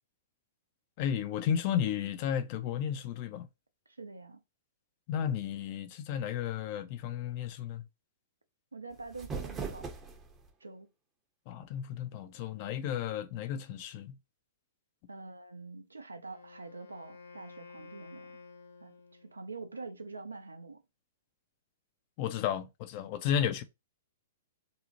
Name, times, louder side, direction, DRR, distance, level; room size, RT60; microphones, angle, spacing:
voice 1, 1.0-3.5 5.1-7.8 11.5-14.2 22.2-23.6, left 9 dB, 45° left, 0.4 m, -33 dB
voice 2, 4.0-4.4 8.7-9.9 10.6-10.9 15.1-18.4 18.8-18.9 19.2-20.8, right 3 dB, 85° right, 0.4 m, -45 dB
sound 1, 8.9-10.5, right 5 dB, 20° right, 0.6 m, -40 dB
Wind instrument woodwind instrument, 16.2-19.5, left 4 dB, 80° left, 0.6 m, -52 dB
2.6 x 2.1 x 2.8 m
figure-of-eight pair, 110°, 0 cm